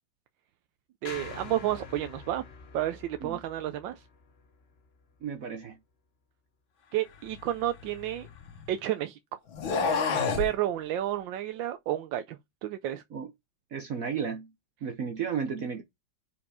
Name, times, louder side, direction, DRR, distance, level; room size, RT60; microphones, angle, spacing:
sound 1, 1.0-5.4, left 5 dB, 45° left, 0.8 m, -46 dB
voice 1, 1.0-2.4 2.7-4.0 6.9-8.3 8.7-9.4 10.1-13.0, right 13 dB, 80° right, 1.3 m, -31 dB
voice 2, 5.2-5.8 13.1-13.3 13.7-14.5 14.8-15.8, right 7 dB, 55° right, 1.0 m, -33 dB
sound 2, 7.3-8.8 9.5-10.5, left 5 dB, 90° left, 2.0 m, -30 dB
5.3 x 4.9 x 4.8 m
omnidirectional pair, 2.1 m